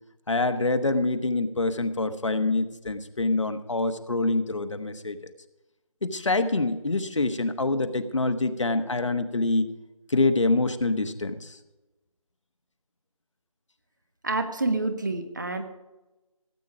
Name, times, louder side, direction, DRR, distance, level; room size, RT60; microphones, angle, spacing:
voice 1, 0.3-5.3 6.0-9.7 10.1-11.6, left 2 dB, 55° left, 9 dB, 1.2 m, -25 dB
voice 2, 14.2-15.6, right 2 dB, 35° right, 7 dB, 1.3 m, -27 dB
17.5 x 8.5 x 4.9 m, 1.1 s
figure-of-eight pair, 170°, 18 cm